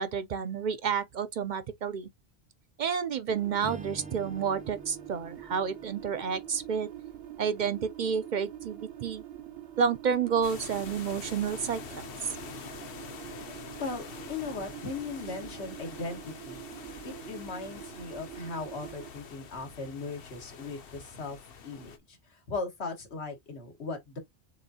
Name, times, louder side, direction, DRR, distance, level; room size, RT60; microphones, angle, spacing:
voice 1, 0.0-2.1 2.8-6.9 7.4-9.2 9.8-12.3, right 6 dB, 55° right, 0.6 m, -30 dB
sound 1, 3.3-19.1, right 11 dB, 75° right, 1.0 m, -45 dB
Strum, 3.6-8.0, right 3 dB, 10° right, 0.4 m, -48 dB
sound 2, 10.4-22.0, left 6 dB, 65° left, 1.0 m, -46 dB
voice 2, 13.8-16.6 17.0-24.2, left 3 dB, 90° left, 1.7 m, -38 dB
6.9 x 2.6 x 2.7 m
omnidirectional pair, 1.1 m